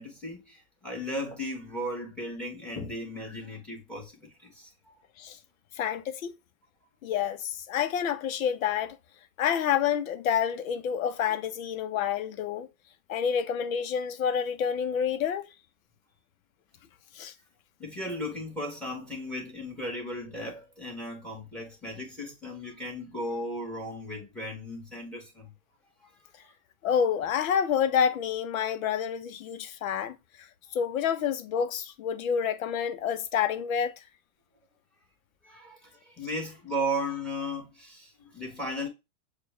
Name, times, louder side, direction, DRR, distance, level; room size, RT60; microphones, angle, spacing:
voice 1, 0.0-4.9 17.8-25.5 26.0-26.5 35.4-38.9, equal, ahead, 1.5 m, -36 dB
voice 2, 5.8-6.3 7.0-9.0 9.4-12.7 13.1-15.4 17.1-17.3 26.8-30.5 30.7-33.9, left 8 dB, 70° left, 0.8 m, -28 dB
6.6 x 2.4 x 3.2 m
supercardioid pair, 145°, 44 cm